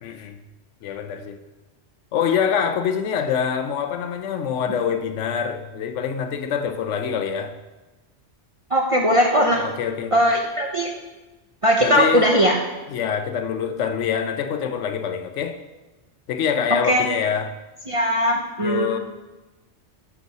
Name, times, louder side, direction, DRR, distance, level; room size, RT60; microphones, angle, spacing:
voice 1, 0.0-0.4 0.8-1.4 2.1-7.5 9.6-10.2 11.8-12.3 12.9-15.6 16.3-17.6 18.6-19.0, left 7 dB, 90° left, 0.9 m, -25 dB
voice 2, 8.7-9.6 10.1-10.9 11.6-12.6 16.9-17.1 17.9-19.0, equal, 40° right, 0.5 m, -19 dB
7.3 x 4.0 x 4.7 m
omnidirectional pair, 1.2 m